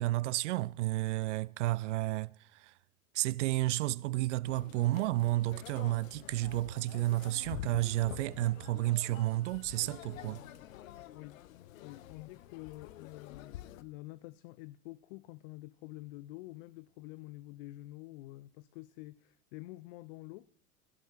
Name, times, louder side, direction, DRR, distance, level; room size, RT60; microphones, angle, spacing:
voice 1, 0.0-2.7 3.1-10.4, right 17 dB, 55° right, 0.5 m, -31 dB
sound 1, 4.4-13.8, left 13 dB, 65° left, 1.0 m, -48 dB
voice 2, 11.8-20.5, left 19 dB, 40° left, 0.5 m, -48 dB
15.5 x 10.5 x 5.8 m
figure-of-eight pair, 90°, 44 cm